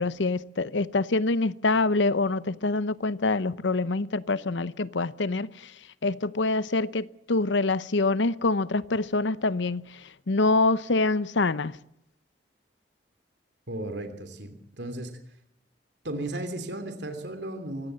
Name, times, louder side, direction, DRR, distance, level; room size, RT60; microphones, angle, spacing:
voice 1, 0.0-5.5 6.0-9.8 10.3-11.7, left 3 dB, 80° left, 0.8 m, -25 dB
voice 2, 13.7-15.2 16.0-17.9, right 1 dB, 70° right, 2.9 m, -35 dB
24.5 x 16.5 x 7.7 m
head